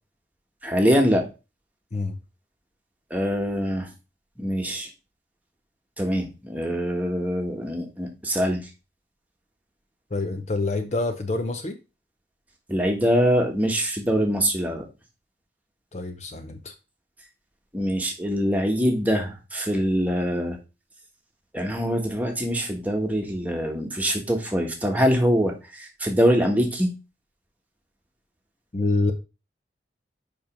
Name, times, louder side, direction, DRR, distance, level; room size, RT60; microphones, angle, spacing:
voice 1, 0.6-1.2 3.1-3.9 4.4-4.9 6.0-8.7 12.7-14.8 17.7-20.6 21.5-26.9, equal, 10° right, 1 dB, 1.4 m, -24 dB
voice 2, 10.1-11.8 15.9-16.7 28.7-29.1, left 2 dB, 40° left, 7 dB, 0.6 m, -26 dB
5.3 x 5.2 x 5.1 m, 0.29 s
head